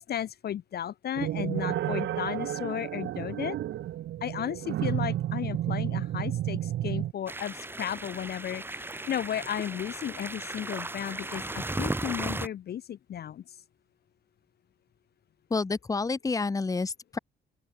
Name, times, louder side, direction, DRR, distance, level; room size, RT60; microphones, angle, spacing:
voice 1, 0.1-3.6 4.2-13.4, left 10 dB, 55° left, 0.6 m, -34 dB
sound 1, 1.2-7.1, right 12 dB, 70° right, 0.9 m, -31 dB
sound 2, 7.3-12.5, right 2 dB, 10° right, 1.3 m, -36 dB
voice 2, 15.5-17.2, left 4 dB, 15° left, 0.7 m, -29 dB
open air
cardioid pair, 90°, 20 cm